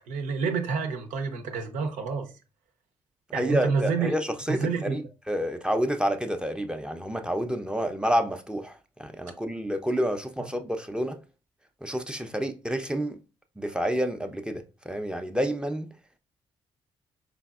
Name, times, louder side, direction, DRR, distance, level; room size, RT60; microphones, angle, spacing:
voice 1, 0.1-2.3 3.3-4.1 4.5-5.0 10.4-10.5, right 5 dB, 75° right, 0.7 m, -28 dB
voice 2, 3.3-5.0 5.3-11.2 11.8-13.2 13.6-15.9, equal, 5° right, 0.6 m, -29 dB
3.9 x 3.3 x 2.4 m
hypercardioid pair, 45°, 13 cm